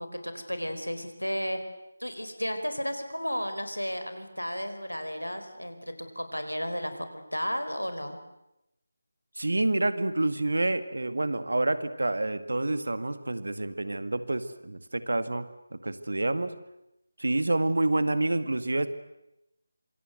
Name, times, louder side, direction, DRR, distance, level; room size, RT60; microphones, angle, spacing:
voice 1, 0.0-1.6 2.0-7.1 7.3-8.2, equal, 85° left, 8 dB, 4.5 m, -33 dB
voice 2, 9.4-15.5 15.7-16.5 17.2-18.9, right 2 dB, 60° right, 12 dB, 2.1 m, -28 dB
26.5 x 26.0 x 7.9 m, 0.88 s
figure-of-eight pair, 160°, 0 cm